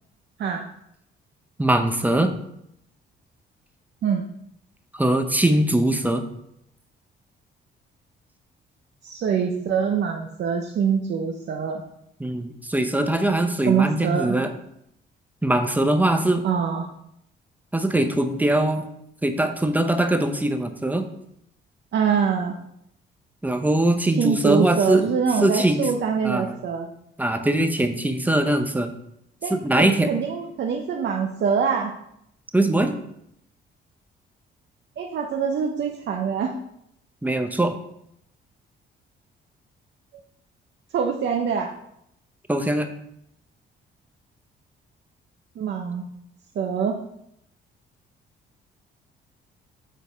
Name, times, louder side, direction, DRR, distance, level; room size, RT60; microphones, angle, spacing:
voice 1, 1.6-2.3 4.9-6.2 12.2-14.5 15.4-16.4 17.7-18.8 19.2-21.1 23.4-25.0 25.4-25.9 26.2-26.5 27.2-28.9 29.5-30.1 32.5-33.0 37.2-37.8 42.5-42.9, right 1 dB, 10° right, 6 dB, 0.9 m, -21 dB
voice 2, 9.0-11.8 13.7-14.4 16.4-16.9 21.9-22.6 24.2-26.9 29.4-31.9 35.0-36.5 40.9-41.7 45.6-46.1 46.5-47.0, right 6 dB, 60° right, 1 dB, 0.9 m, -24 dB
8.3 x 4.0 x 5.2 m, 0.75 s
cardioid pair, 90°, 20 cm